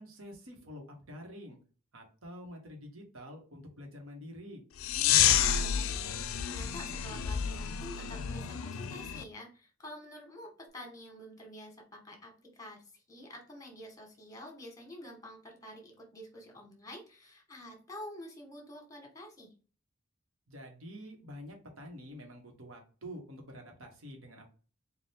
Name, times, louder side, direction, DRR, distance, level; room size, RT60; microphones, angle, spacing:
voice 1, 0.0-1.6 1.9-4.6 20.5-24.5, equal, 80° right, 2 dB, 1.3 m, -47 dB
sound 1, 4.8-9.2, left 9 dB, 80° left, 0.4 m, -29 dB
voice 2, 4.9-19.5, left 1 dB, 15° left, 2 dB, 1.2 m, -48 dB
4.2 x 2.4 x 3.5 m, 0.37 s
head